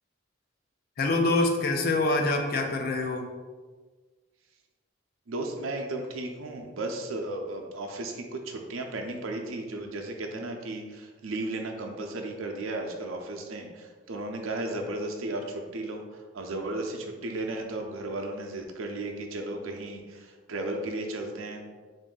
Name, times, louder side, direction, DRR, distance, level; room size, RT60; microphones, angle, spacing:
voice 1, 1.0-3.3, left 2 dB, 45° left, 3 dB, 0.4 m, -25 dB
voice 2, 5.3-21.6, right 2 dB, 90° right, 3 dB, 0.6 m, -35 dB
3.6 x 2.6 x 3.8 m, 1.4 s
head